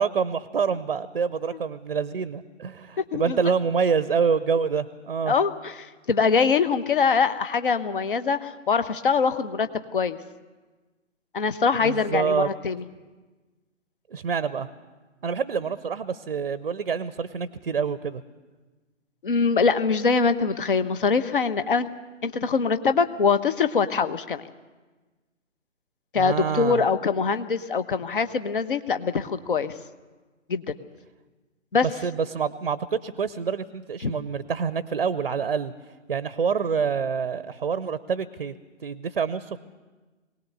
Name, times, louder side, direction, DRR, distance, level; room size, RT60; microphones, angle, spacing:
voice 1, 0.0-5.3 11.8-12.5 14.1-14.7 15.2-18.2 26.1-26.9 31.8-35.7 36.1-38.5 38.8-39.6, right 6 dB, 40° right, 15 dB, 0.7 m, -26 dB
voice 2, 3.1-3.5 5.3-5.7 6.1-10.2 11.3-12.8 19.2-21.9 22.2-24.4 26.1-29.7 30.5-30.7 31.7-31.9 34.0-34.1, left 5 dB, 40° left, 11 dB, 1.0 m, -23 dB
23.0 x 18.5 x 6.8 m, 1.3 s
figure-of-eight pair, 135°, 39 cm